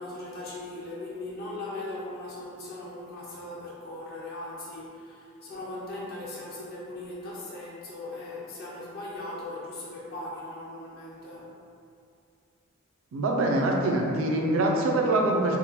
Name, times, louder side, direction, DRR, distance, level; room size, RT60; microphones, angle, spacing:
voice 1, 0.0-11.5, left 2 dB, 50° left, -6 dB, 0.5 m, -39 dB
voice 2, 13.1-15.6, right 2 dB, 85° right, 0 dB, 0.4 m, -24 dB
3.3 x 2.1 x 2.8 m, 2.4 s
head